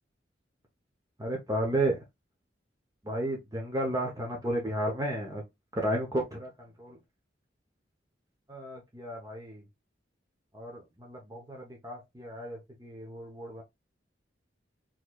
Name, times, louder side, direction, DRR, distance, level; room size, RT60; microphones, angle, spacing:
voice 1, 1.2-2.0 3.0-5.4 5.8-7.0 8.5-9.6 10.5-13.6, right 1 dB, 20° right, 1.0 m, -33 dB
4.1 x 3.2 x 2.4 m
head